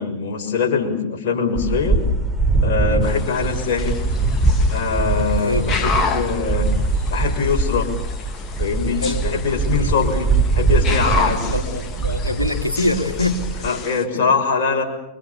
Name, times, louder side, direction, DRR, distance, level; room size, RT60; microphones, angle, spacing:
voice 1, 0.0-2.0 2.6-4.0 4.7-6.7 7.1-7.9 8.6-11.6 13.6-14.8, left 5 dB, 50° left, 3 dB, 6.3 m, -23 dB
sound 1, 1.6-13.7, right 3 dB, 5° right, 4.7 m, -22 dB
sound 2, 3.0-14.0, left 5 dB, 30° left, 3.3 m, -30 dB
voice 2, 11.5-13.4, left 2 dB, 85° left, 5 dB, 3.1 m, -23 dB
29.5 x 25.0 x 7.1 m, 0.87 s
figure-of-eight pair, 90°, 0 cm